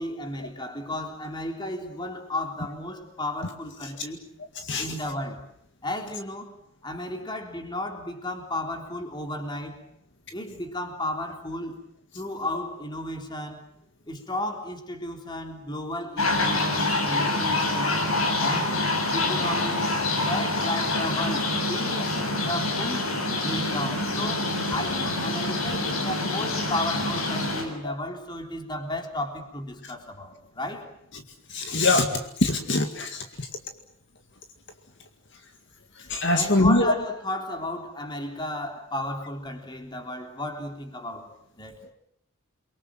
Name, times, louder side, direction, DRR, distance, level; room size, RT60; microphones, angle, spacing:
voice 1, 0.0-4.2 4.8-5.4 5.8-6.5 6.8-9.8 10.3-11.8 12.1-13.6 14.1-18.0 18.4-18.7 19.1-19.9 20.2-22.1 22.4-30.9 36.3-41.8, left 1 dB, 20° left, 4 dB, 3.6 m, -34 dB
sound 1, 16.2-27.6, left 2 dB, 80° left, 7.1 m, -26 dB
voice 2, 31.5-32.1 32.4-33.2 36.1-36.9, left 2 dB, 55° left, 5 dB, 2.1 m, -22 dB
29.5 x 23.0 x 7.5 m, 0.70 s
head